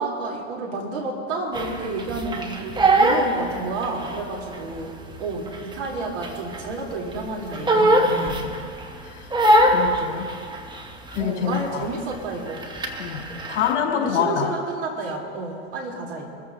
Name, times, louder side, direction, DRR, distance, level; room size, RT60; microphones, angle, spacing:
voice 1, 0.0-8.5 11.2-12.6 13.9-16.3, right 3 dB, 65° right, -1 dB, 3.5 m, -30 dB
Crying sobbing, 1.5-4.2 4.5-6.8 7.1-8.8 9.3-11.2 11.5-11.8 12.1-13.7, right 1 dB, 10° right, 1.5 m, -21 dB
voice 2, 7.5-8.4 9.0-9.3 9.7-10.3 11.1-11.8 13.0-13.2 13.5-14.5, left 8 dB, 60° left, -2 dB, 4.0 m, -26 dB
24.0 x 14.0 x 2.8 m, 2.3 s
hypercardioid pair, 85°, 35 cm